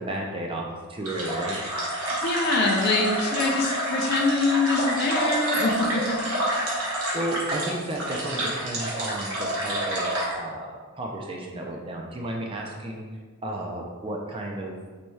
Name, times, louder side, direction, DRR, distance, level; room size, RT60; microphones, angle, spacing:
voice 1, 0.0-1.6 7.1-13.0 13.4-15.0, right 1 dB, 25° right, 0 dB, 0.3 m, -33 dB
sound 1, 1.0-10.3, right 1 dB, 70° right, 1.0 m, -28 dB
voice 2, 2.1-6.3, left 3 dB, 50° left, 0 dB, 0.4 m, -24 dB
4.1 x 2.3 x 3.1 m, 1.5 s
head